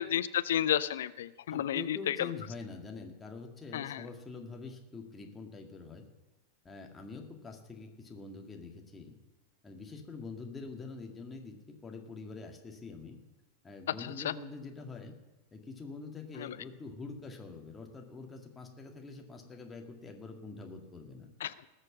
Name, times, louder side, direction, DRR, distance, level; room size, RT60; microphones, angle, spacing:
voice 1, 0.0-2.3 3.7-4.1 14.2-14.3 16.4-16.5 21.4-21.5, left 11 dB, 60° left, 14 dB, 0.5 m, -31 dB
voice 2, 1.5-6.0 6.6-9.1 9.6-13.2 13.6-15.1 15.5-21.3, left 4 dB, 15° left, 2 dB, 2.0 m, -45 dB
19.5 x 6.7 x 6.2 m, 1.0 s
figure-of-eight pair, 90°, 0 cm